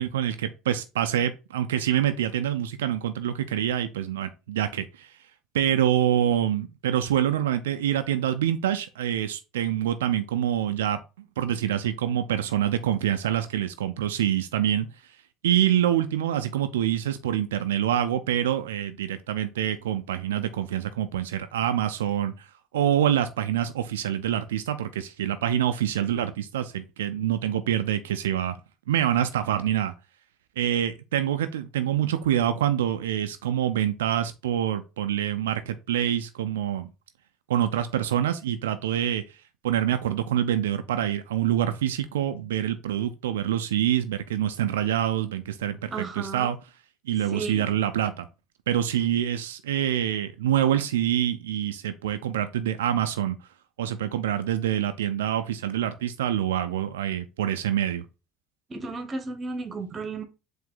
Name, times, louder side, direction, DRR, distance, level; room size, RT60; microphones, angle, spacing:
voice 1, 0.0-5.1 5.5-11.0 11.4-14.9 15.4-22.5 22.7-28.6 28.9-29.9 30.6-36.9 37.5-39.2 39.6-46.6 47.1-48.3 48.7-53.4 53.8-58.0, right 10 dB, 90° right, 0.3 m, -26 dB
voice 2, 45.9-46.5 47.3-47.7 58.7-60.2, right 3 dB, 30° right, 1.0 m, -34 dB
4.5 x 2.6 x 3.8 m
hypercardioid pair, 75°, 0 cm